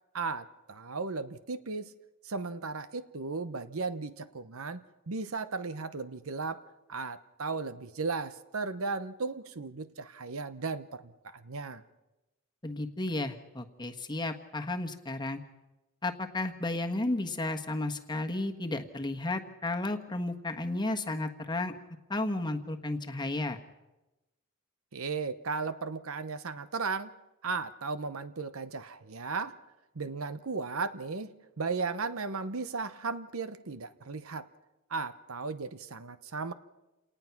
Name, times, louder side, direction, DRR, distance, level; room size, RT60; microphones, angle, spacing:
voice 1, 0.1-1.9 2.2-6.6 6.9-11.8 24.9-27.1 27.4-29.6 29.9-31.3 31.6-34.5 34.9-36.5, right 4 dB, 70° right, 12 dB, 0.9 m, -36 dB
voice 2, 12.6-15.4 16.0-21.7 22.1-23.6, left 2 dB, 20° left, 5 dB, 1.4 m, -33 dB
28.0 x 19.0 x 6.0 m, 1.0 s
head